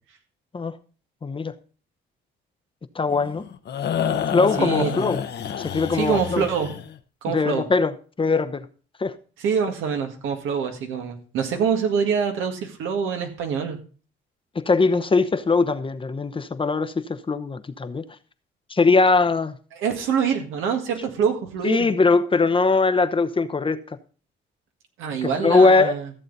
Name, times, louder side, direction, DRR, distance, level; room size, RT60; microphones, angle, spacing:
voice 1, 1.2-1.5 2.9-3.4 4.3-5.2 5.6-6.4 7.3-8.7 9.0-9.1 14.5-18.0 18.7-19.5 21.6-23.8 25.2-25.9, left 3 dB, 25° left, 0.8 m, -21 dB
sound 1, 3.1-6.9, left 8 dB, 60° left, 0.9 m, -29 dB
voice 2, 4.6-5.1 5.9-6.7 7.2-7.7 9.4-13.8 19.7-21.9 25.0-26.1, right 6 dB, 90° right, 1.9 m, -25 dB
14.5 x 7.4 x 4.1 m
cardioid pair, 90°, 20 cm